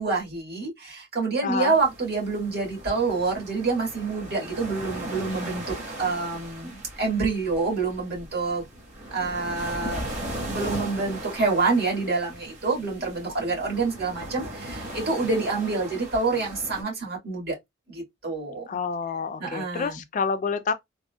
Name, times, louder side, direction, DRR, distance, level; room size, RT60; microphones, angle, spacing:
voice 1, 0.0-8.6 9.1-10.0 10.4-17.5 17.9-18.7 19.4-20.0, right 3 dB, 55° right, 1.7 m, -27 dB
voice 2, 1.4-1.8 18.7-20.7, left 5 dB, 40° left, 0.3 m, -28 dB
sound 1, 1.7-16.8, right 1 dB, 35° right, 1.3 m, -38 dB
3.6 x 2.1 x 2.2 m
head